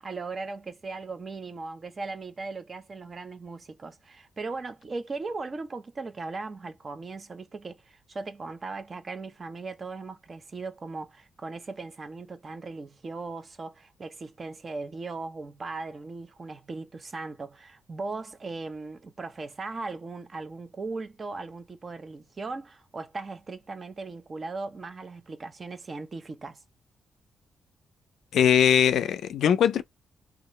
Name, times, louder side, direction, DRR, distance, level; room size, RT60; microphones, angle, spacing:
voice 1, 0.0-26.6, right 3 dB, 30° right, 0.6 m, -38 dB
voice 2, 28.3-29.8, left 9 dB, 80° left, 0.4 m, -21 dB
2.8 x 2.4 x 3.0 m
wide cardioid pair, 160°, 0 cm